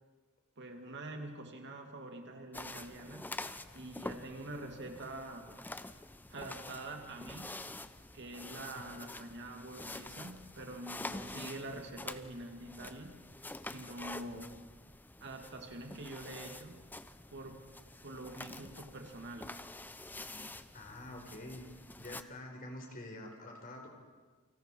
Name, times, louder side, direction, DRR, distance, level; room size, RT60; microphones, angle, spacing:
voice 1, 0.6-3.3 3.7-5.5 6.3-7.6 8.1-13.2 13.6-14.6 15.2-16.8 17.3-17.7 18.0-19.6, right 2 dB, 55° right, 4 dB, 2.5 m, -45 dB
sound 1, 2.5-22.2, left 2 dB, 10° left, 0.7 m, -47 dB
voice 2, 20.7-21.6 22.0-23.9, left 1 dB, 40° left, 2 dB, 4.5 m, -46 dB
29.0 x 25.0 x 4.7 m, 1.4 s
head